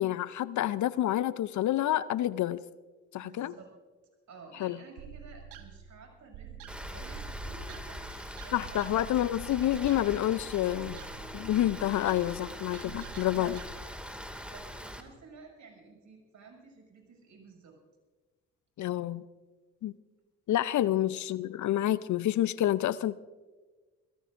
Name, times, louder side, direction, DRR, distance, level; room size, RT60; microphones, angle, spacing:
voice 1, 0.0-2.6 3.1-3.6 4.6-4.8 8.5-11.0 11.3-13.6 18.8-19.2 19.8-19.9 20.5-23.2, left 13 dB, 60° left, 0.6 m, -28 dB
voice 2, 3.2-3.7 4.3-9.3 13.1-13.5 14.4-17.8 20.8-21.0, right 4 dB, 60° right, 6.6 m, -52 dB
sound 1, 5.0-13.7, right 8 dB, 85° right, 1.3 m, -48 dB
Rain, 6.7-15.0, equal, 5° right, 2.2 m, -42 dB
24.5 x 18.0 x 2.6 m
hypercardioid pair, 50°, 33 cm